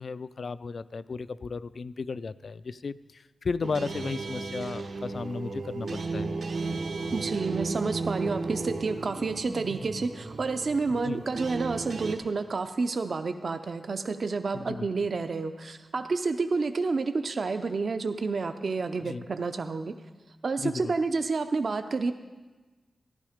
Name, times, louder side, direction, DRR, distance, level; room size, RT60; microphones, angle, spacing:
voice 1, 0.0-6.4 10.9-11.2 14.5-14.9 19.0-19.2 20.6-20.9, left 4 dB, 60° left, 16 dB, 0.4 m, -35 dB
sound 1, 3.6-12.1, right 3 dB, 75° right, 1.0 m, -34 dB
voice 2, 7.1-19.9 20.4-22.1, right 4 dB, 55° right, 8 dB, 0.5 m, -29 dB
14.0 x 11.5 x 5.0 m, 1.3 s
wide cardioid pair, 130°, 0 cm